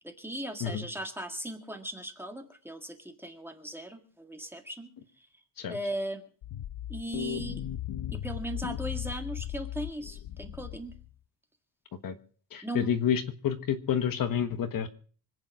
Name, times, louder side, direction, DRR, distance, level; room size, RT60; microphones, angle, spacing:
voice 1, 0.0-4.9 5.2-5.3 5.6-6.3 6.9-7.6 8.1-10.9 12.6-12.9, right 1 dB, 5° right, 4 dB, 1.8 m, -38 dB
sound 1, 6.4-11.1, left 12 dB, 70° left, 1.0 m, -37 dB
voice 2, 12.5-14.9, left 8 dB, 50° left, 8 dB, 1.4 m, -29 dB
25.5 x 8.9 x 4.9 m, 0.42 s
cardioid pair, 150°, 43 cm